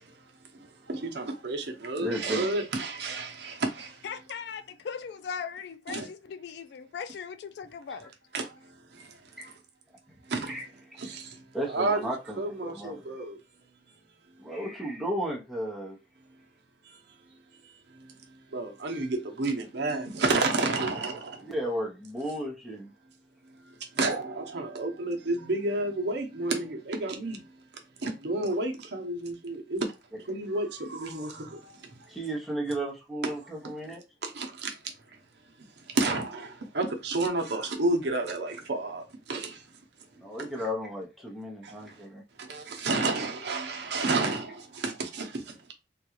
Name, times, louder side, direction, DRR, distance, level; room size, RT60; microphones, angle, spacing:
voice 1, 0.9-3.9 5.9-6.1 8.3-8.4 10.3-10.5 11.0-11.2 11.7-12.1 12.4-13.4 18.5-21.4 24.0-27.4 28.0-29.9 30.3-31.5 34.2-34.7 36.0-36.5 36.7-39.0 39.3-39.5 42.5-45.3, right 2 dB, 65° right, 0.8 m, -30 dB
voice 2, 2.0-2.4 9.4-9.5 10.5-10.6 11.5-13.1 14.4-16.0 21.4-22.9 32.1-34.0 40.2-42.2, equal, ahead, 0.8 m, -34 dB
voice 3, 4.0-8.1, left 6 dB, 65° left, 0.3 m, -39 dB
3.6 x 2.3 x 2.9 m
head